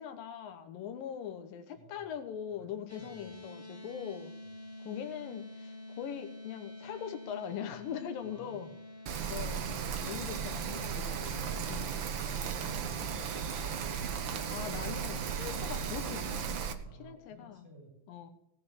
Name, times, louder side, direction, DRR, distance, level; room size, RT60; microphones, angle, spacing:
voice 1, 0.0-4.3 4.8-8.7 9.3-9.7 10.0-11.4 11.7-12.0 14.5-17.7 18.1-18.3, left 9 dB, 90° left, 8 dB, 2.8 m, -41 dB
voice 2, 1.7-2.1 2.5-3.4 8.2-8.8 16.8-18.1, right 2 dB, 20° left, 0 dB, 6.6 m, -56 dB
sound 1, 2.9-17.3, left 2 dB, 10° right, 1.1 m, -50 dB
Rain, 9.1-16.7, right 7 dB, 75° right, 1.1 m, -35 dB
17.5 x 7.6 x 7.0 m, 0.75 s
omnidirectional pair, 3.9 m